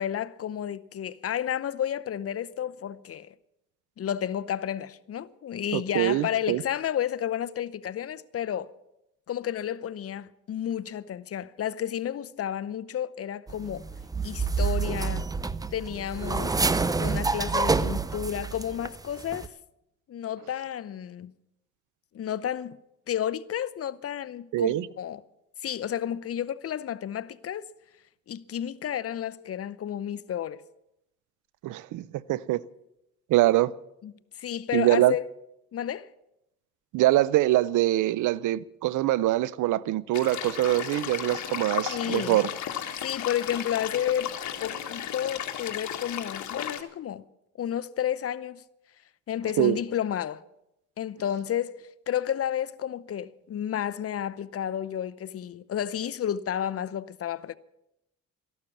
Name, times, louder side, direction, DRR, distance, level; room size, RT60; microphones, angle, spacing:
voice 1, 0.0-3.3 4.0-8.7 9.3-13.9 14.2-15.3 15.7-16.6 17.0-19.5 20.1-21.3 22.1-22.8 23.1-25.2 25.6-27.6 28.3-30.6 34.0-34.1 34.4-35.3 35.7-36.1 41.9-42.4 43.0-44.3 44.6-47.2 47.6-48.6 49.3-50.4 51.0-51.8 52.1-57.5, left 10 dB, 50° left, 0.7 m, -31 dB
voice 2, 5.7-6.6 24.5-24.9 31.6-32.7 33.3-33.7 34.7-35.1 36.9-42.5 49.6-49.8, right 15 dB, 80° right, 0.6 m, -24 dB
sound 1, 13.5-18.9 19.2-19.5, right 4 dB, 10° right, 0.5 m, -28 dB
sound 2, 40.1-46.8, left 10 dB, 70° left, 1.6 m, -35 dB
14.0 x 12.0 x 7.2 m
cardioid pair, 90°, 30 cm